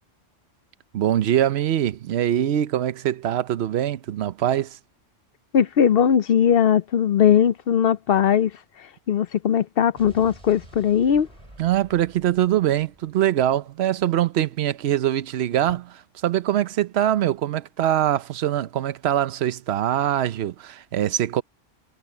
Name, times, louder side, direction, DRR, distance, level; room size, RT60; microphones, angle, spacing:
voice 1, 0.9-4.8 11.6-21.4, right 11 dB, 60° right, 0.9 m, -23 dB
voice 2, 5.5-8.5 8.8-11.3, left 8 dB, 60° left, 0.7 m, -19 dB
Explosion, 10.0-14.0, right 1 dB, 25° right, 4.1 m, -49 dB
omnidirectional pair, 1.3 m